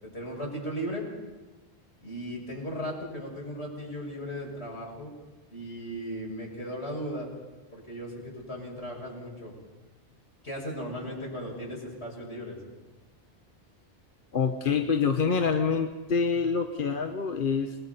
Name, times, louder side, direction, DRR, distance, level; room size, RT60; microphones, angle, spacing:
voice 1, 0.0-1.1 2.0-5.1 5.5-7.3 7.7-9.5 10.4-12.6, equal, 75° left, -2 dB, 7.4 m, -36 dB
voice 2, 14.3-17.8, left 5 dB, 55° left, 5 dB, 1.2 m, -26 dB
29.5 x 21.0 x 5.6 m, 1.2 s
omnidirectional pair, 1.1 m